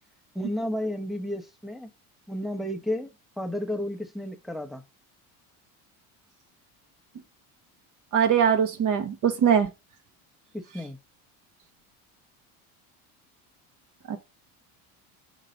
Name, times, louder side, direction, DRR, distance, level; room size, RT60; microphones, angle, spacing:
voice 1, 0.3-1.9 2.3-3.1 3.4-4.8 10.5-11.0, left 1 dB, ahead, 0.9 m, -32 dB
voice 2, 8.1-9.7 14.1-14.2, right 8 dB, 50° right, 1.6 m, -22 dB
5.6 x 4.0 x 5.0 m
cardioid pair, 120°, 41 cm